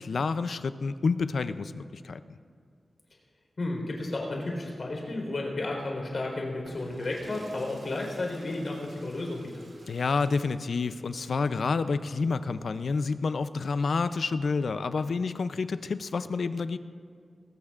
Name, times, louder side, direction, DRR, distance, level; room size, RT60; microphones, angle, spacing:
voice 1, 0.0-2.2 9.9-16.8, left 4 dB, 70° left, 12 dB, 0.5 m, -29 dB
voice 2, 3.6-9.6, left 2 dB, 50° left, 0 dB, 4.0 m, -32 dB
sound 1, 6.5-13.2 14.5-15.9, right 1 dB, 75° right, 3.2 m, -53 dB
21.5 x 18.5 x 2.5 m, 2.2 s
wide cardioid pair, 130°, 0 cm